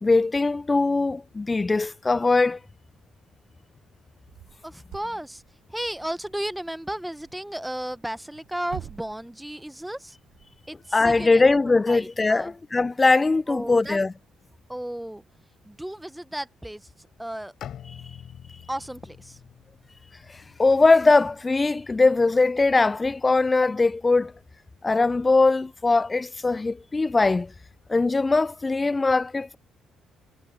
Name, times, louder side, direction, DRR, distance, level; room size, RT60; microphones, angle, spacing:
voice 1, 0.0-2.6 10.9-14.1 20.3-24.3 24.8-27.5 27.9-29.6, left 3 dB, 20° left, 0.3 m, -21 dB
sound 1, 4.2-16.1, right 14 dB, 80° right, 4.9 m, -51 dB
voice 2, 4.6-5.4 5.7-10.2 10.7-11.4 11.9-12.5 13.5-14.0 14.7-15.2 15.6-16.9 17.2-17.5 18.7-19.4, right 1 dB, 5° right, 0.8 m, -34 dB
Bowed string instrument, 17.6-21.5, left 10 dB, 60° left, 5.1 m, -45 dB
cardioid pair, 110°, 0 cm